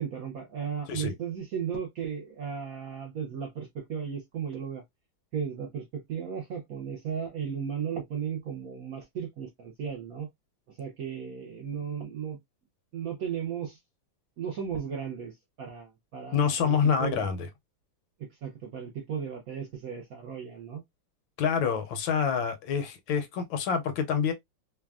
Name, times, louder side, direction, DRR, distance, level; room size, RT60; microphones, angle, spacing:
voice 1, 0.0-4.8 5.3-10.3 10.7-12.4 12.9-13.8 14.4-17.3 18.2-20.8, right 7 dB, 70° right, 0.8 m, -35 dB
voice 2, 16.3-17.5 21.4-24.3, left 7 dB, 75° left, 1.4 m, -27 dB
3.4 x 2.1 x 2.3 m
omnidirectional pair, 2.2 m